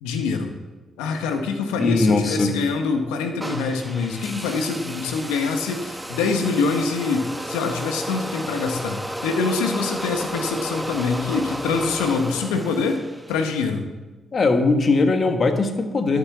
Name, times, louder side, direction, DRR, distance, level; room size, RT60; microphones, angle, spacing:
voice 1, 0.0-0.5 1.0-13.0 13.3-13.9, left 4 dB, 90° left, 5 dB, 1.1 m, -25 dB
voice 2, 1.8-2.5 14.3-16.2, left 3 dB, 50° left, 6 dB, 1.5 m, -20 dB
sound 1, 3.4-13.6, right 1 dB, 5° right, 1.0 m, -33 dB
11.5 x 6.4 x 7.2 m, 1.2 s
supercardioid pair, 50°, 0 cm